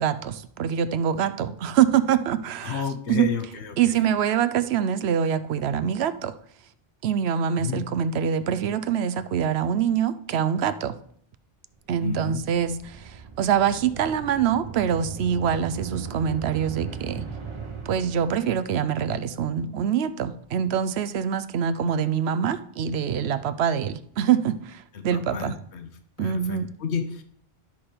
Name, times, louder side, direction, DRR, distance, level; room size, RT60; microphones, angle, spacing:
voice 1, 0.0-2.8 3.1-3.3 3.8-6.3 7.0-11.0 11.9-17.3 17.9-25.6 26.2-26.7, right 8 dB, 75° right, 13 dB, 0.8 m, -25 dB
voice 2, 2.6-4.0 7.6-7.9 12.0-12.4 24.9-25.9 26.2-27.2, left 6 dB, 85° left, 7 dB, 1.2 m, -32 dB
sound 1, 12.1-18.9, right 6 dB, 30° right, 0.9 m, -38 dB
12.0 x 4.4 x 5.0 m, 0.62 s
omnidirectional pair, 1.1 m